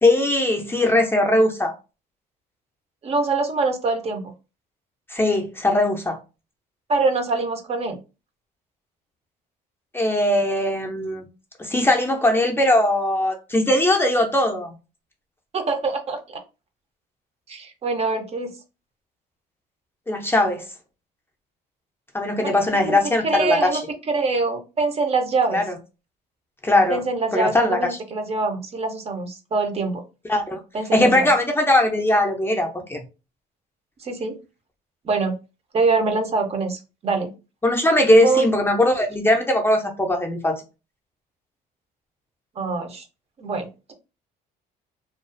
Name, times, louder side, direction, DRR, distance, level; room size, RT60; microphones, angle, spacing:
voice 1, 0.0-1.7 5.1-6.2 9.9-11.3 11.6-14.7 20.1-20.6 22.1-23.8 25.5-25.7 26.6-27.0 27.3-27.8 30.3-30.6 30.9-33.0 37.6-40.6, left 1 dB, 15° left, 0.5 m, -20 dB
voice 2, 3.0-4.3 6.9-8.0 15.5-16.4 17.5-18.5 22.4-22.5 22.8-23.0 23.2-23.8 24.1-25.6 26.9-30.0 30.7-31.3 34.0-34.4 35.0-35.4 35.7-37.3 38.2-38.5 42.6-43.0 43.4-43.9, right 3 dB, 40° right, 0.5 m, -24 dB
2.4 x 2.3 x 2.4 m
cardioid pair, 110°, 17 cm